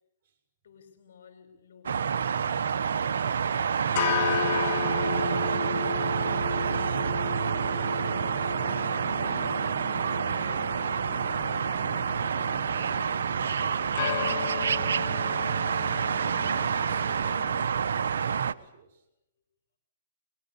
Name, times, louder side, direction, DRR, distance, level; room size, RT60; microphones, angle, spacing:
voice 1, 0.6-4.6 5.2-6.9 7.8-9.6 10.3-10.7 11.1-12.6, left 6 dB, 70° left, 8 dB, 5.8 m, -54 dB
sound 1, 1.9-18.5, right 7 dB, 75° right, 1.1 m, -28 dB
sound 2, 3.8-17.7, left 11 dB, 50° left, 1.3 m, -35 dB
voice 2, 17.1-19.1, right 7 dB, 45° right, 2 dB, 7.3 m, -54 dB
23.5 x 23.0 x 8.6 m, 0.83 s
hypercardioid pair, 135°, 0 cm